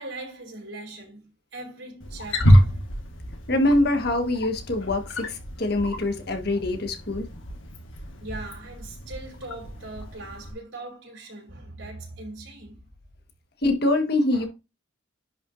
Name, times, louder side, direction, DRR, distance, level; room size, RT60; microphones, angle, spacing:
voice 1, 0.0-2.8 8.2-12.8 14.3-14.5, right 2 dB, 75° right, 4.9 m, -40 dB
Wild animals, 2.0-10.5, equal, 85° left, 1.7 m, -27 dB
voice 2, 3.5-7.2 13.6-14.5, left 2 dB, 55° left, 1.5 m, -24 dB
10.5 x 5.9 x 2.6 m
head